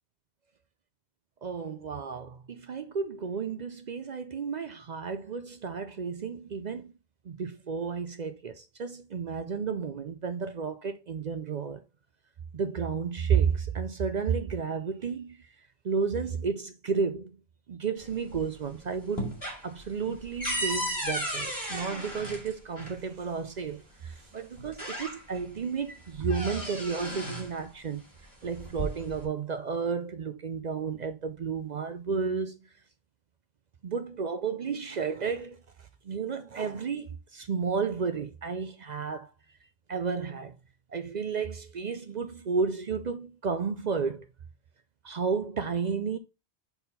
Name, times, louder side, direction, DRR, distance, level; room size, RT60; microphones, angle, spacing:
voice 1, 1.4-6.9 7.3-11.8 12.5-15.4 15.8-17.4 17.7-19.3 19.6-28.0 28.4-32.6 33.8-35.6 36.1-39.3 39.9-40.6 40.9-44.2 45.0-46.2, right 5 dB, 50° right, 0.6 m, -32 dB
sound 1, 18.0-18.7 19.0-23.0 24.1-24.2 24.6-25.5 25.9-27.5 28.5-29.3, equal, 20° left, 2.4 m, -35 dB
4.5 x 4.1 x 5.2 m
omnidirectional pair, 1.1 m